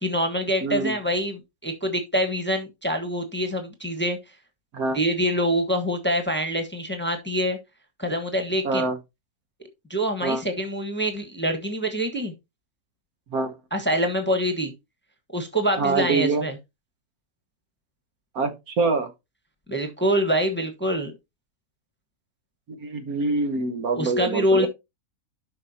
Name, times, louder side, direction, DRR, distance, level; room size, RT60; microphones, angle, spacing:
voice 1, 0.0-4.2 4.9-7.6 8.0-8.9 9.9-12.3 13.7-14.7 15.3-16.5 19.7-21.1 23.9-24.7, equal, 5° left, 1.2 m, -25 dB
voice 2, 0.6-0.9 4.7-5.0 8.6-9.0 10.2-10.4 13.3-13.5 15.8-16.5 18.3-19.1 22.8-24.7, right 3 dB, 65° right, 1.5 m, -25 dB
11.5 x 5.6 x 2.8 m
omnidirectional pair, 1.7 m